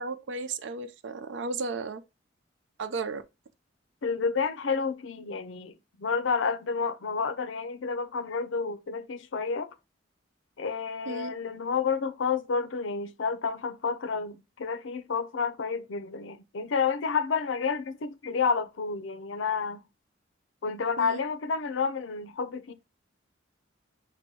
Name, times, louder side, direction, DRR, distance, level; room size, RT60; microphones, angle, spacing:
voice 1, 0.0-2.0 2.8-3.2 11.1-11.3 21.0-21.2, right 3 dB, 75° right, 0.4 m, -34 dB
voice 2, 4.0-9.7 10.6-19.8 20.6-22.7, left 5 dB, 80° left, 0.5 m, -30 dB
6.0 x 2.2 x 2.7 m
head